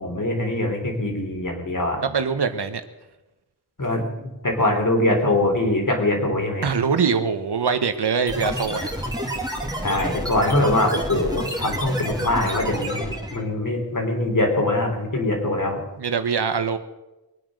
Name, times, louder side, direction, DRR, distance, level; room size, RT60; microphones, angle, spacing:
voice 1, 0.0-2.0 3.8-6.7 9.8-15.8, left 1 dB, 50° left, 2 dB, 3.7 m, -23 dB
voice 2, 2.0-2.8 6.6-8.9 16.0-16.8, right 5 dB, 85° right, 9 dB, 1.2 m, -23 dB
sound 1, 8.3-13.4, equal, 10° right, 2.7 m, -29 dB
22.5 x 9.1 x 6.4 m, 1.0 s
wide cardioid pair, 75°, 39 cm